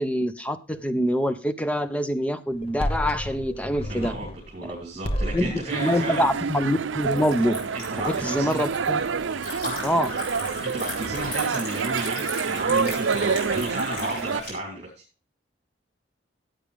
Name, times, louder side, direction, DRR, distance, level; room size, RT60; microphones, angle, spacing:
voice 1, 0.0-4.1 4.6-4.8 5.3-7.6 8.0-9.0 9.8-10.1, equal, 5° left, 11 dB, 0.7 m, -25 dB
sound 1, 2.5-4.7 5.0-5.7, equal, 30° left, 1.0 m, -31 dB
voice 2, 3.9-6.3 7.7-8.6 9.5-9.8 10.6-14.9, right 1 dB, 35° right, -1 dB, 3.0 m, -33 dB
sound 2, 5.7-14.4, right 5 dB, 85° right, 0.5 m, -28 dB
Liquid, 6.1-14.5, left 1 dB, 45° left, 5.1 m, -37 dB
14.5 x 8.8 x 3.4 m, 0.33 s
head